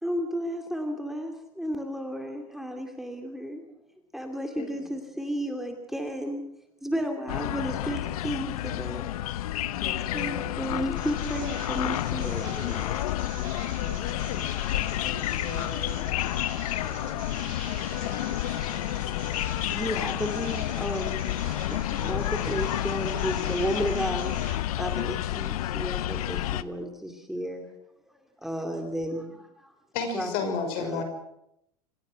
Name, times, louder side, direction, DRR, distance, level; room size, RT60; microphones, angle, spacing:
voice 1, 0.0-3.6 4.1-6.4 6.8-9.1 10.1-12.9 13.4-13.6 19.7-21.3 21.7-27.7 28.4-29.7 30.1-31.0, equal, ahead, 4 dB, 2.6 m, -33 dB
voice 2, 4.6-5.0 7.3-7.9 9.7-10.8 13.7-16.2 16.7-17.3 17.8-19.5, left 4 dB, 35° left, 7 dB, 5.9 m, -43 dB
sound 1, 7.3-26.6, left 14 dB, 80° left, 0.9 m, -30 dB
sound 2, 11.0-24.6, right 6 dB, 45° right, 7.9 m, -45 dB
voice 3, 29.9-31.0, left 5 dB, 60° left, 7 dB, 5.8 m, -30 dB
27.0 x 16.0 x 6.3 m, 0.78 s
hypercardioid pair, 105°, 19 cm